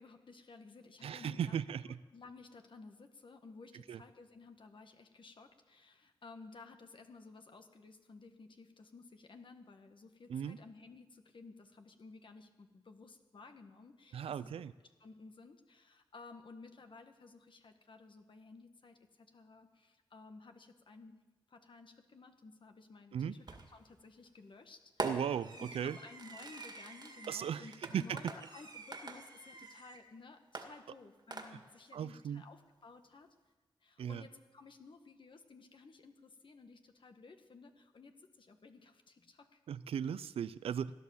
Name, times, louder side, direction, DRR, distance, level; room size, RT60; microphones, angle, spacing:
voice 1, 0.0-1.6 1.9-14.6 15.0-21.2 21.5-33.3 33.8-39.6, left 4 dB, 60° left, 6 dB, 1.5 m, -55 dB
voice 2, 1.0-2.0 3.9-4.0 10.3-10.6 14.1-14.7 23.1-23.4 25.0-26.0 27.3-27.6 27.9-28.2 31.9-32.4 34.0-34.2 39.7-40.9, right 8 dB, 90° right, 16 dB, 0.5 m, -37 dB
Fireworks, 23.5-23.9 25.0-30.0 30.5-31.9, right 3 dB, 50° right, 2.1 m, -45 dB
16.5 x 10.5 x 7.3 m, 1.2 s
cardioid pair, 55°, 10 cm